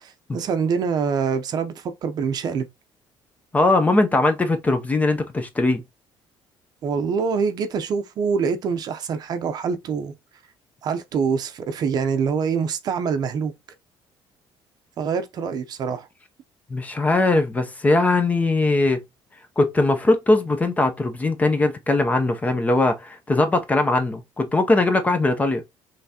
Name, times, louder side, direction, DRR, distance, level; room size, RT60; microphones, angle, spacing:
voice 1, 0.0-2.7 6.8-10.1 10.8-13.5 15.0-16.1, right 6 dB, 45° right, 0.6 m, -25 dB
voice 2, 3.5-5.8 16.7-19.0 19.6-25.6, left 2 dB, 15° left, 0.6 m, -20 dB
5.6 x 3.3 x 2.8 m
cardioid pair, 160°, 9 cm